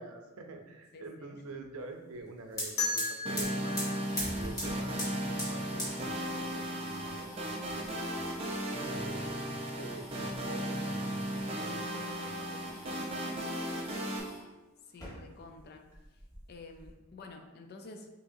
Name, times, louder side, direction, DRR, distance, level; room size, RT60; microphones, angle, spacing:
voice 1, 0.0-3.9 4.3-8.3 8.9-13.1, right 2 dB, 90° right, 4 dB, 0.6 m, -47 dB
voice 2, 0.9-1.4 14.9-15.8 16.5-18.1, left 3 dB, 50° left, 5 dB, 0.4 m, -49 dB
sound 1, 2.2-2.3 2.5-14.4 14.9-15.6 15.9-16.9, equal, 15° left, 1.4 m, -43 dB
sound 2, 2.8-5.6, left 4 dB, 85° left, 1.5 m, -37 dB
sound 3, 3.2-14.2, right 1 dB, 25° right, 0.6 m, -36 dB
6.1 x 2.8 x 2.7 m, 1.1 s
head